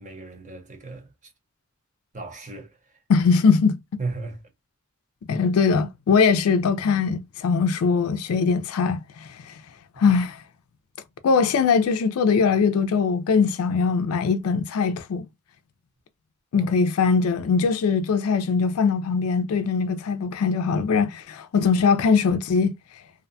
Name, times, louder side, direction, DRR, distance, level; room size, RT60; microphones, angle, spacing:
voice 1, 0.0-1.3 2.1-3.0 4.0-4.4 10.0-10.1 16.5-16.7, right 3 dB, 35° right, 0.8 m, -36 dB
voice 2, 3.1-3.8 5.3-9.6 10.0-10.4 11.2-15.2 16.5-22.7, left 5 dB, 85° left, 0.4 m, -21 dB
2.6 x 2.1 x 2.5 m
head